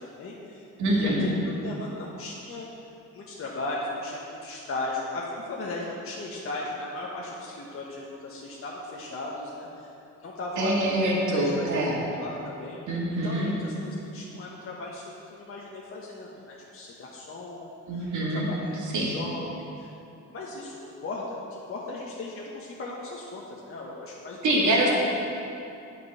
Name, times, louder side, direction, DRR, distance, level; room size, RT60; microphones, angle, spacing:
voice 1, 0.0-2.7 3.1-9.9 10.2-12.8 13.2-19.5 19.8-19.9 20.3-24.9, left 2 dB, 45° left, -4 dB, 1.3 m, -37 dB
voice 2, 0.8-1.3 10.6-12.0 12.9-13.5 17.9-18.5 18.9-19.1 24.4-24.9, right 1 dB, 75° right, -3 dB, 2.2 m, -25 dB
9.5 x 5.4 x 6.5 m, 2.7 s
cardioid pair, 90°, 30 cm